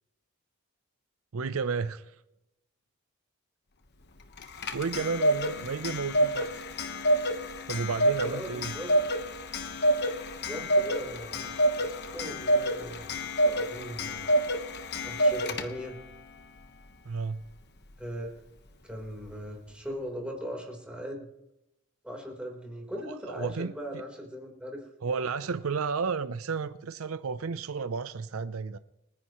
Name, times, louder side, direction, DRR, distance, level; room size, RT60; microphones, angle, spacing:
voice 1, 1.3-2.2 4.7-6.5 7.7-8.7 17.0-17.4 23.1-24.0 25.0-28.8, right 5 dB, 80° right, 0.6 m, -32 dB
Clock, 4.4-16.0, equal, 55° left, 1.2 m, -28 dB
voice 2, 8.2-8.9 10.5-13.2 13.4-14.4 15.0-16.0 18.0-18.3 18.8-21.2 22.0-24.9, equal, 5° right, 3.9 m, -39 dB
29.5 x 10.0 x 3.1 m
head